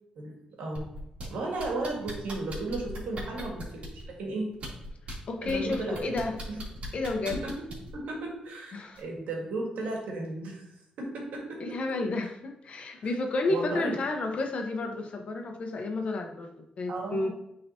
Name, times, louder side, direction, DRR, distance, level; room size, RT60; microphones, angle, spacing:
banging light bulb against the mike, 0.8-1.3 1.6-4.0 4.5-5.1 5.5-7.9 9.0-9.1, equal, 55° right, 2.3 m, -39 dB
voice 1, 1.3-4.5 5.4-6.2 6.5-6.9 7.3-7.7 7.9-10.7 11.0-11.9 13.5-14.0 16.9-17.3, right 2 dB, 85° right, -1 dB, 1.8 m, -35 dB
voice 2, 5.3-6.4 6.9-7.5 8.7-9.0 11.6-17.3, left 2 dB, 55° left, 3 dB, 1.1 m, -31 dB
8.9 x 3.9 x 2.9 m, 0.82 s
cardioid pair, 90°, 2 cm